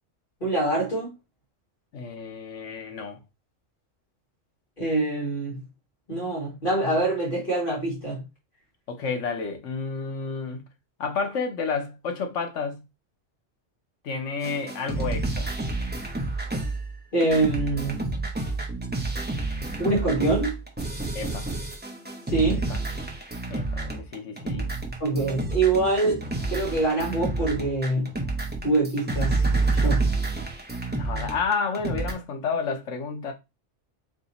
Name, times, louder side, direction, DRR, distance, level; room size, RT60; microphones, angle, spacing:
voice 1, 0.4-1.1 4.8-5.5 6.1-8.2 17.1-18.1 19.8-20.6 22.3-22.7 25.0-28.1 28.6-29.4 29.7-30.0, right 2 dB, 45° left, 1.9 m, -25 dB
voice 2, 1.9-3.2 8.9-10.7 11.0-12.8 14.0-15.5 21.1-21.5 22.4-22.8 23.5-24.7 30.9-33.3, left 5 dB, 80° left, 1.2 m, -31 dB
sound 1, 14.4-32.1, right 3 dB, 10° right, 0.6 m, -29 dB
3.4 x 2.8 x 4.0 m
omnidirectional pair, 1.2 m